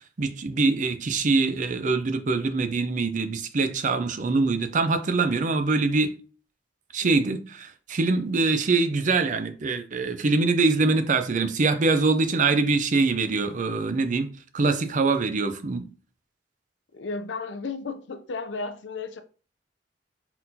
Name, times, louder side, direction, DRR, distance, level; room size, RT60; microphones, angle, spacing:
voice 1, 0.2-6.1 6.9-15.8, right 3 dB, 45° right, 0.5 m, -24 dB
voice 2, 16.9-19.2, left 4 dB, 75° left, 0.5 m, -33 dB
4.2 x 3.9 x 2.7 m
head